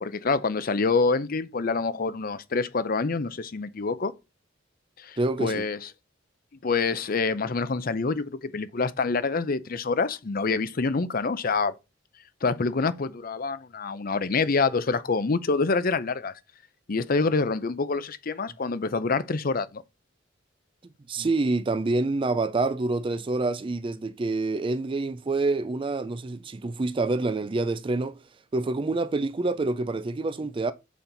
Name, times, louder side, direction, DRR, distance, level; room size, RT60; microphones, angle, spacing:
voice 1, 0.0-4.1 5.0-5.9 6.6-11.7 12.4-16.3 16.9-19.8, left 4 dB, 45° left, 0.6 m, -26 dB
voice 2, 5.2-5.7 21.1-28.2 28.5-30.7, right 3 dB, 25° right, 0.4 m, -27 dB
7.1 x 4.4 x 3.9 m
head